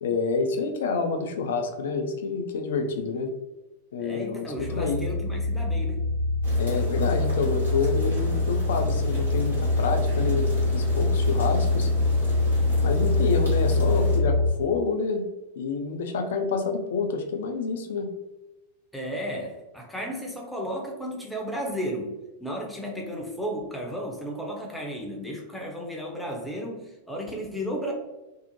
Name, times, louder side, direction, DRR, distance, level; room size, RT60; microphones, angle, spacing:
voice 1, 0.0-3.3 3.9-5.1 6.6-11.9 12.8-15.3 15.6-18.1, left 4 dB, 60° left, 5 dB, 0.3 m, -28 dB
voice 2, 4.0-6.0 18.9-27.9, equal, 5° left, -1 dB, 0.6 m, -34 dB
sound 1, 4.6-14.5, left 2 dB, 35° right, 1.1 m, -24 dB
sound 2, 6.4-14.2, left 1 dB, 75° right, 1.2 m, -38 dB
2.6 x 2.0 x 2.8 m, 1.0 s
figure-of-eight pair, 90°, 0 cm